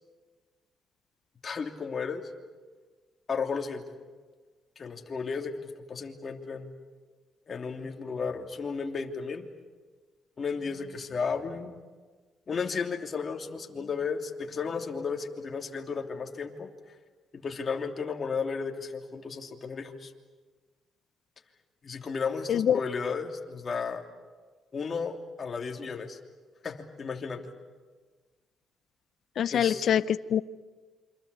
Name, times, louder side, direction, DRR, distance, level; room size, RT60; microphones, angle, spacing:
voice 1, 1.4-2.3 3.3-3.9 4.8-6.7 7.5-9.5 10.4-11.8 12.5-16.7 17.3-20.1 21.8-24.1 24.7-26.2 26.6-27.4 29.5-29.9, left 5 dB, 40° left, 4 dB, 3.0 m, -34 dB
voice 2, 22.5-22.8 29.4-30.4, left 9 dB, 65° left, 16 dB, 0.8 m, -24 dB
28.0 x 25.5 x 8.3 m, 1.4 s
cardioid pair, 90°, 0 cm